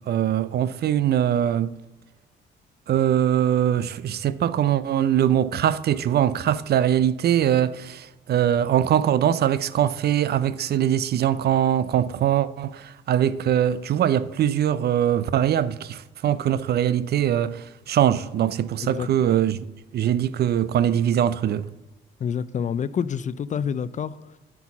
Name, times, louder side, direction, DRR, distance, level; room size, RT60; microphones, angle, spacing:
voice 1, 0.1-1.7 2.9-19.6 19.9-21.7, right 10 dB, 55° right, 0.4 m, -22 dB
voice 2, 22.2-24.4, left 7 dB, 40° left, 0.4 m, -28 dB
8.1 x 4.6 x 7.1 m
cardioid pair, 90°, 20 cm